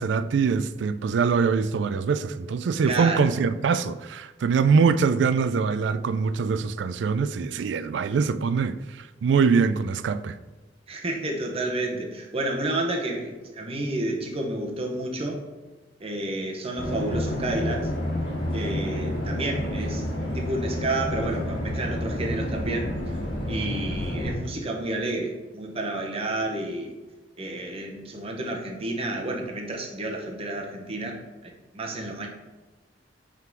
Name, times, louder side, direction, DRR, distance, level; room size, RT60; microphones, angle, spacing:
voice 1, 0.0-10.4, right 5 dB, 70° right, 0.3 m, -23 dB
voice 2, 2.8-3.2 10.9-15.4 16.0-17.9 18.5-20.1 20.3-22.9 23.5-26.9 27.4-31.2 31.4-32.3, right 2 dB, 35° right, 0.9 m, -30 dB
sound 1, 16.8-24.3, left 1 dB, 80° left, 1.6 m, -29 dB
5.8 x 3.8 x 4.5 m
head